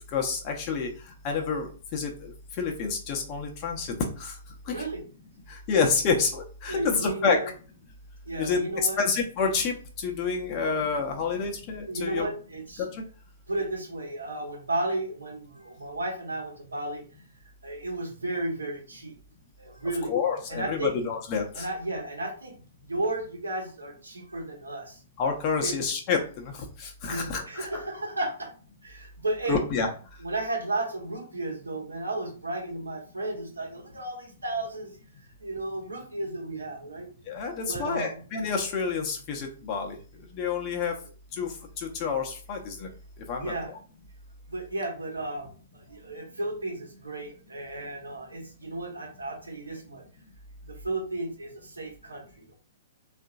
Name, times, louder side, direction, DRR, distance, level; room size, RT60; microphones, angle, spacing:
voice 1, 0.1-0.9 1.2-2.3 2.6-3.9 4.2-4.3 5.7-7.4 8.4-8.6 9.0-9.7 10.0-12.3 20.1-21.7 25.2-26.4 27.0-27.7 29.5-29.9 37.3-39.9 40.3-40.9 41.4-41.5 42.0-42.9 43.3-43.5, left 5 dB, 35° left, 1 dB, 0.7 m, -28 dB
voice 2, 4.7-5.0 6.7-7.5 8.2-9.0 10.5-10.7 11.9-12.8 13.5-17.0 17.6-19.2 19.6-20.1 20.5-20.9 21.5-22.6 22.9-25.0 25.6-25.8 27.1-28.5 28.8-29.6 30.2-37.1 37.7-38.2 43.4-43.7 44.5-50.0 50.7-52.5, right 2 dB, 80° right, 0 dB, 1.0 m, -33 dB
3.6 x 2.5 x 2.4 m, 0.39 s
figure-of-eight pair, 115°, 0 cm